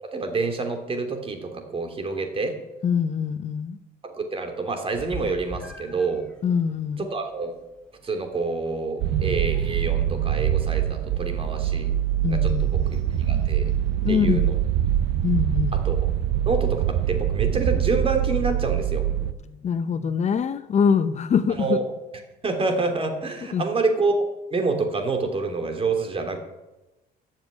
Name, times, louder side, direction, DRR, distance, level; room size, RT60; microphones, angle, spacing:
voice 1, 0.0-2.6 4.2-6.3 7.0-7.6 8.0-11.9 12.3-13.0 13.3-13.7 14.1-14.6 15.8-16.1 16.5-19.0 21.6-21.8 22.4-24.2 24.5-26.4, right 3 dB, 35° right, 5 dB, 3.1 m, -27 dB
voice 2, 2.8-3.8 6.4-7.1 12.2-12.7 14.0-14.5 15.2-15.7 19.5-21.8 23.5-23.6, left 6 dB, 40° left, 12 dB, 0.8 m, -24 dB
Meow, 4.9-14.6, right 1 dB, 5° left, 3.9 m, -46 dB
sound 1, 9.0-19.3, right 11 dB, 85° right, 0.9 m, -24 dB
14.0 x 7.5 x 9.3 m, 1.0 s
cardioid pair, 110°, 17 cm